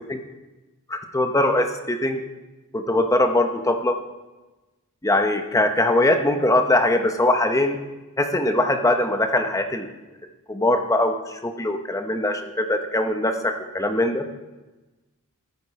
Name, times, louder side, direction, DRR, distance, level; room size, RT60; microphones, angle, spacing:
voice 1, 0.9-2.2 2.7-3.9 5.0-7.8 8.2-9.9 10.5-14.2, left 1 dB, 15° left, 6 dB, 0.9 m, -21 dB
14.0 x 8.3 x 4.8 m, 1.1 s
head